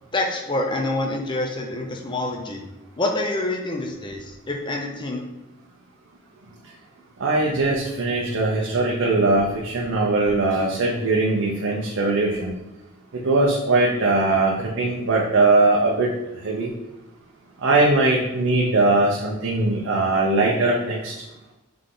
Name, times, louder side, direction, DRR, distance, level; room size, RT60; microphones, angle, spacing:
voice 1, 0.1-2.6 3.0-5.3, left 2 dB, 20° left, 2 dB, 0.5 m, -26 dB
voice 2, 7.2-12.5 13.2-16.1 16.4-16.7 17.6-21.1, right 2 dB, 70° right, -2 dB, 0.6 m, -20 dB
3.7 x 3.3 x 3.8 m, 0.96 s
head